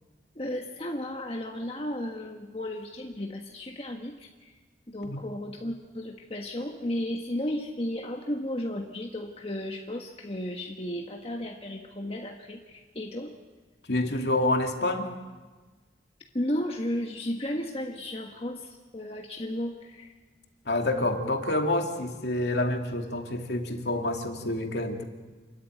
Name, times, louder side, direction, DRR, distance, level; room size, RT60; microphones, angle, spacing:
voice 1, 0.3-4.5 4.9-13.3 16.3-20.1, left 1 dB, 35° left, 2 dB, 1.4 m, -34 dB
voice 2, 13.9-15.1 20.7-25.0, left 1 dB, 70° left, 3 dB, 2.6 m, -28 dB
28.0 x 14.0 x 9.3 m, 1.3 s
head